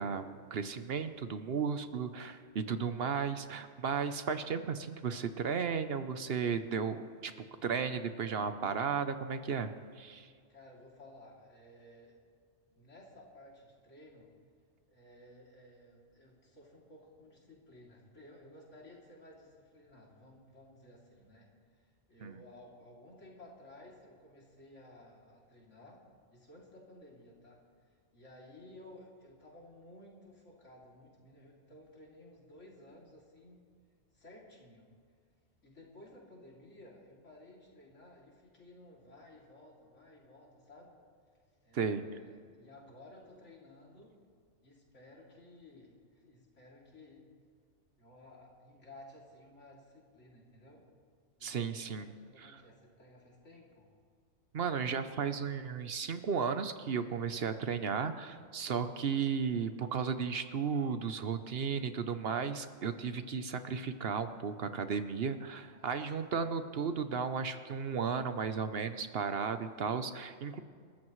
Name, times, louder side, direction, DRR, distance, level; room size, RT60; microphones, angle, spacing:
voice 1, 0.0-7.3 7.6-9.7 10.0-10.3 22.2-22.4 41.7-42.0 51.4-52.1 52.4-52.6 54.5-70.6, right 6 dB, 60° right, 10 dB, 0.9 m, -34 dB
voice 2, 10.5-12.2 12.8-14.3 14.9-26.0 26.3-27.6 28.1-33.6 34.1-34.9 35.6-41.0 41.6-44.2 44.6-47.2 48.0-50.9 51.4-53.9 65.7-66.3, left 1 dB, 80° left, -3 dB, 3.3 m, -56 dB
28.0 x 13.5 x 3.2 m, 2.1 s
omnidirectional pair, 1.2 m